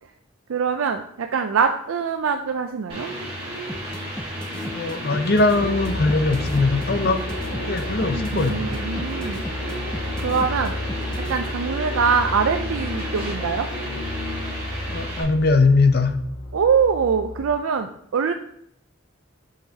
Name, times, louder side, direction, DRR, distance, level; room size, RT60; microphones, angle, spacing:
voice 1, 0.5-3.1 8.1-9.4 10.2-10.8 11.3-13.7 16.5-18.3, right 6 dB, 85° right, 6 dB, 0.4 m, -23 dB
sound 1, 2.9-15.2, equal, 25° right, 2.9 m, -32 dB
sound 2, 3.7-11.3, equal, 5° left, 0.4 m, -35 dB
voice 2, 4.7-7.2 7.7-8.7 14.9-16.1, left 3 dB, 50° left, 8 dB, 0.6 m, -20 dB
sound 3, 5.5-17.6, left 1 dB, 85° left, 1.5 m, -32 dB
7.7 x 6.5 x 2.8 m, 0.71 s
head